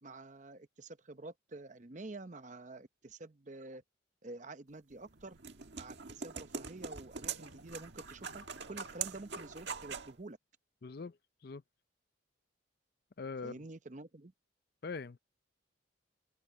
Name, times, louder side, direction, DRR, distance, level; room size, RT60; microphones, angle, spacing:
voice 1, 0.0-3.8 4.2-5.4 5.7-10.4 13.4-14.3, right 2 dB, 40° right, 0.8 m, -48 dB
sound 1, 4.9-10.2, right 6 dB, 60° right, 1.8 m, -43 dB
voice 2, 10.8-11.2 11.4-11.6 13.2-13.6 14.8-15.2, left 4 dB, 50° left, 0.5 m, -42 dB
head